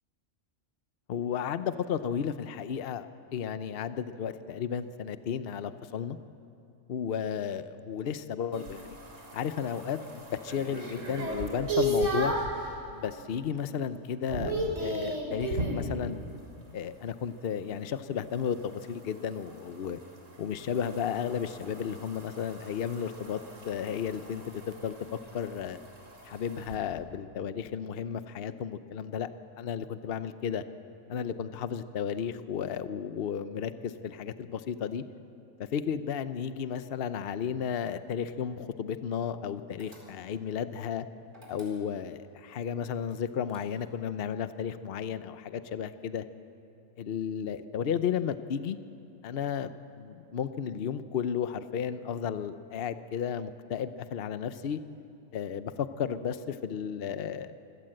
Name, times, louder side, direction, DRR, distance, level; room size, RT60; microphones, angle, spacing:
voice 1, 1.1-3.1 3.3-6.2 6.9-9.0 9.3-12.3 12.9-16.3 16.7-20.0 20.4-24.9 25.3-25.8 26.2-29.3 29.6-30.6 31.1-35.0 35.7-41.1 41.5-46.2 47.0-48.8 49.2-54.8 55.3-57.6, left 8 dB, 55° left, 12 dB, 0.9 m, -33 dB
sound 1, 8.5-12.6 13.1-13.5 13.8-15.9 18.4-26.8, right 1 dB, 75° right, 3.6 m, -35 dB
sound 2, 39.8-40.5 41.3-42.2 43.1-44.1, equal, 40° right, 4.7 m, -55 dB
26.0 x 16.5 x 7.8 m, 2.6 s
omnidirectional pair, 1.3 m